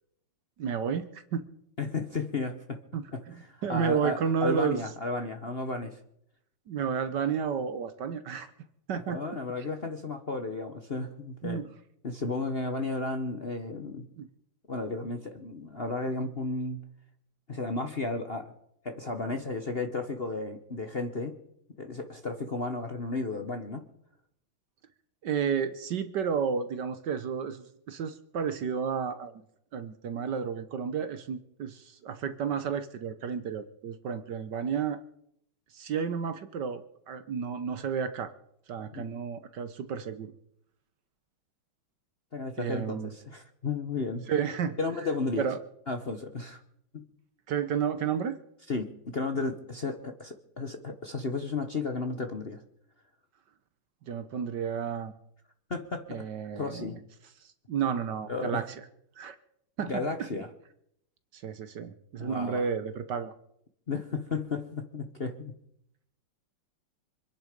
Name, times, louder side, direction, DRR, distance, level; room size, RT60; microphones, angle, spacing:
voice 1, 0.6-1.4 2.9-4.8 6.7-8.5 8.9-9.2 11.4-11.6 14.2-14.3 25.2-29.4 29.7-35.0 35.7-38.3 38.7-40.3 42.6-43.1 44.3-44.8 45.4-45.6 47.5-48.4 54.1-55.1 56.1-57.0 57.7-58.7 59.2-59.4 59.8-60.3 61.3-63.3, right 7 dB, 60° right, 11 dB, 1.4 m, -31 dB
voice 2, 1.8-2.8 3.1-6.0 9.1-11.6 12.0-14.1 14.7-16.8 17.5-18.5 18.8-21.4 21.8-23.8 38.9-39.2 42.3-44.2 44.8-45.5 45.9-46.6 46.9-47.0 48.7-52.6 55.7-56.3 56.6-57.0 58.3-58.6 59.9-60.5 62.2-62.7 63.9-65.6, left 3 dB, 40° left, 7 dB, 1.0 m, -33 dB
25.5 x 10.5 x 5.2 m, 0.75 s
omnidirectional pair, 2.3 m